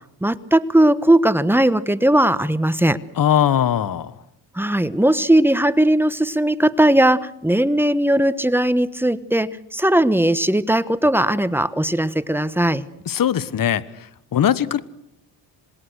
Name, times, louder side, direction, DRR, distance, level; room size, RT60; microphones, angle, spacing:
voice 1, 0.2-3.0 4.5-12.8, right 1 dB, 5° right, 14 dB, 1.2 m, -18 dB
voice 2, 3.2-4.1 13.1-13.8 14.3-14.8, left 10 dB, 50° left, 16 dB, 1.3 m, -19 dB
27.0 x 20.0 x 6.5 m, 0.81 s
cardioid pair, 80°, 44 cm